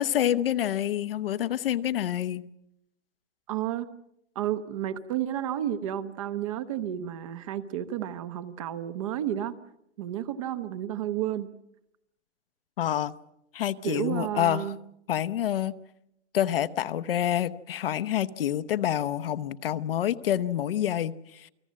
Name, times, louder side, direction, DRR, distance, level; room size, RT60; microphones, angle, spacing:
voice 1, 0.0-2.5 12.8-13.1 13.5-14.7 15.1-15.8 16.3-21.5, left 11 dB, 55° left, 13 dB, 0.9 m, -27 dB
voice 2, 3.5-3.9 4.3-9.5 10.0-11.5 13.8-14.8, right 11 dB, 30° right, 13 dB, 0.9 m, -31 dB
29.0 x 19.0 x 7.5 m, 0.81 s
hypercardioid pair, 165°, 35 cm